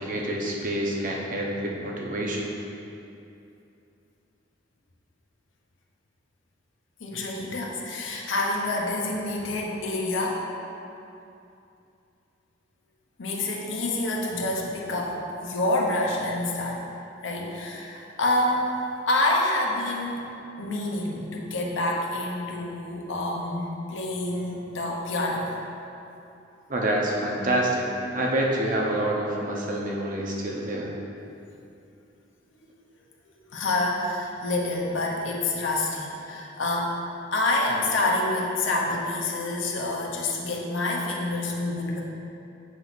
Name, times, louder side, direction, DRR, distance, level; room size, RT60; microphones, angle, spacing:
voice 1, 0.0-2.5 26.7-30.9, right 1 dB, 45° right, -2 dB, 0.9 m, -27 dB
voice 2, 7.0-10.5 13.2-16.8 17.2-18.7 19.1-20.2 20.6-25.5 33.5-37.0 37.3-42.1, left 2 dB, 85° left, -1 dB, 0.9 m, -27 dB
7.7 x 2.7 x 6.0 m, 2.7 s
head